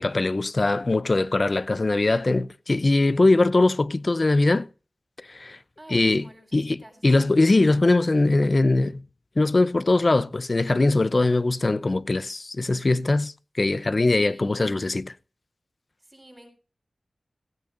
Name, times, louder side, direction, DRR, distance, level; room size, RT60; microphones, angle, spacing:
voice 1, 0.0-4.7 5.3-5.6 5.9-9.0 9.4-15.1, left 2 dB, 40° left, 0.7 m, -21 dB
voice 2, 5.8-7.5 14.1-14.7 16.0-16.5, right 1 dB, 20° right, 7.9 m, -50 dB
17.0 x 16.5 x 2.6 m
wide cardioid pair, 80°, 0 cm